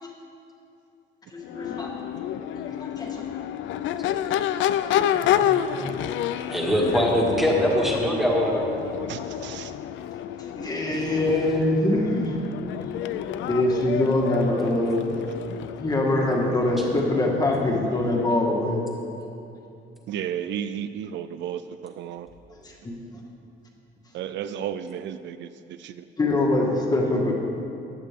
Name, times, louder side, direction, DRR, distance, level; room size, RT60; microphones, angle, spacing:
voice 1, 1.3-1.9 2.6-3.2 4.9-5.8 10.5-12.4 13.5-15.1 15.8-18.8 22.8-23.1 26.2-27.3, left 1 dB, 20° left, -1 dB, 1.6 m, -24 dB
Crowd / Race car auto racing / Accelerating revving vroom, 1.4-18.5, left 10 dB, 80° left, 0.5 m, -29 dB
voice 2, 6.5-8.6, equal, ahead, -3 dB, 1.8 m, -22 dB
voice 3, 9.1-9.7 20.1-22.3 24.1-26.0, right 9 dB, 70° right, 11 dB, 0.4 m, -33 dB
15.5 x 10.5 x 3.6 m, 2.7 s
cardioid pair, 150°, 19 cm